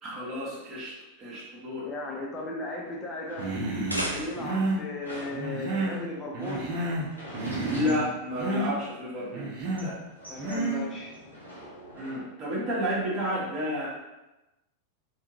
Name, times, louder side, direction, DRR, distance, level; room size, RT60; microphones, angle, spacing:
voice 1, 0.0-1.9 7.7-10.0 11.9-13.9, left 1 dB, 25° right, -7 dB, 1.2 m, -31 dB
voice 2, 1.8-3.5 4.1-6.8 10.3-11.2, left 2 dB, 20° left, -1 dB, 0.6 m, -36 dB
sound 1, 2.8-4.6 5.0-8.8 9.1-12.2, equal, 85° left, 1.1 m, -45 dB
Human voice, 3.4-4.1 4.3-4.8 5.3-6.0 6.3-7.1 7.3-8.1 8.3-8.7 9.3-9.9 10.4-10.8, right 2 dB, 45° right, 0.8 m, -30 dB
sound 2, 3.6-4.7, equal, 85° right, 0.5 m, -34 dB
3.4 x 2.8 x 2.9 m, 1.0 s
figure-of-eight pair, 90°, 0 cm